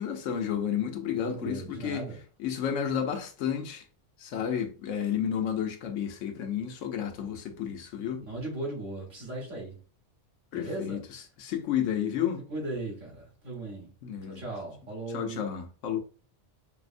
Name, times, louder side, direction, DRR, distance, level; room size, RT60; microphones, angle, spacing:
voice 1, 0.0-2.1 2.4-3.8 4.2-8.3 10.5-12.5 14.0-14.4 15.1-16.0, left 9 dB, 90° left, 1.0 m, -31 dB
voice 2, 1.2-2.2 8.3-9.8 10.5-11.0 12.5-13.9 14.2-15.5, right 2 dB, 85° right, 1.9 m, -37 dB
4.9 x 2.0 x 2.5 m
omnidirectional pair, 1.3 m